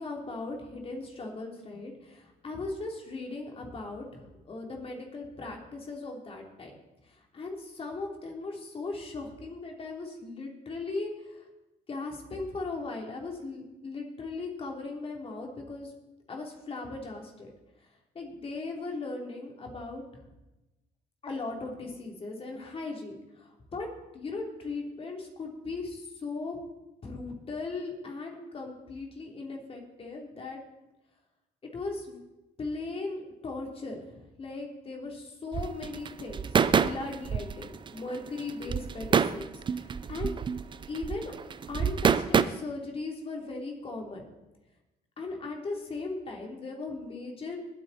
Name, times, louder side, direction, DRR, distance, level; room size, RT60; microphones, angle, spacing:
voice 1, 0.0-11.5 11.9-15.9 16.3-17.5 18.1-20.0 21.2-23.9 24.1-26.6 27.0-30.6 31.7-32.2 32.6-40.3 40.9-41.3 41.7-44.2 45.2-47.6, left 3 dB, 35° left, 1 dB, 3.2 m, -38 dB
sound 1, 35.5-42.4, right 6 dB, 30° right, 0.5 m, -27 dB
20.5 x 8.8 x 4.2 m, 0.99 s
cardioid pair, 110°, 17 cm